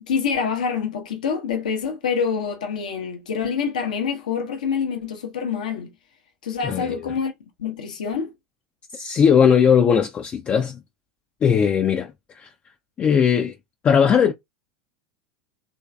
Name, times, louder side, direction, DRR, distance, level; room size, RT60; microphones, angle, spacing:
voice 1, 0.0-5.9 6.4-7.3 7.6-8.3, left 6 dB, 75° left, 0.7 m, -26 dB
voice 2, 6.6-7.1 8.9-10.8 11.4-12.5 13.0-13.6 13.8-14.3, left 7 dB, 30° left, 0.4 m, -19 dB
3.1 x 2.5 x 2.2 m
figure-of-eight pair, 80°, 4 cm